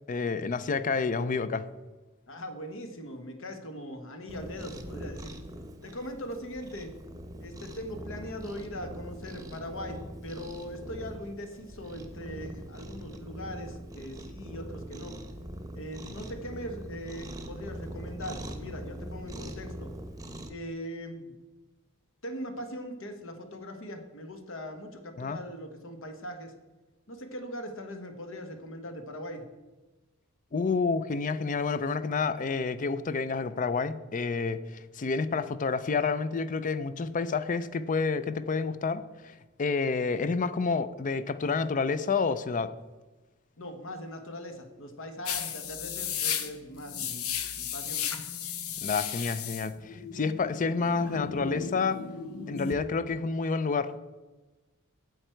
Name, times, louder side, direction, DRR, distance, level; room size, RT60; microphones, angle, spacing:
voice 1, 0.1-1.6 25.2-25.4 30.5-42.7 48.8-52.0 52.5-54.0, left 4 dB, 40° left, 14 dB, 0.5 m, -29 dB
voice 2, 2.3-5.3 5.8-6.9 7.4-15.1 15.7-19.9 20.5-21.3 22.2-26.5 27.1-29.4 43.6-48.0, equal, 65° left, 6 dB, 1.3 m, -40 dB
Cat, 4.3-20.5, right 1 dB, 15° right, 0.9 m, -42 dB
sound 1, 45.3-52.8, left 8 dB, 85° left, 0.8 m, -35 dB
9.4 x 7.8 x 4.5 m, 1.2 s
head